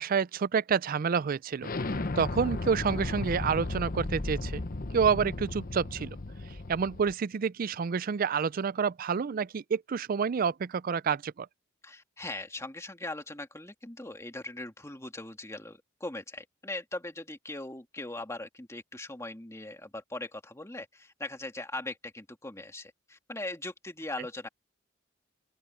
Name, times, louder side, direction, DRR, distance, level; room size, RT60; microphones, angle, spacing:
voice 1, 0.0-1.7 2.2-4.6 4.9-6.2 6.7-11.5, right 6 dB, 45° right, 0.4 m, -28 dB
Explosion, 1.6-7.1, left 2 dB, 45° left, 0.9 m, -35 dB
voice 2, 11.8-24.5, left 2 dB, 15° left, 2.3 m, -40 dB
open air
head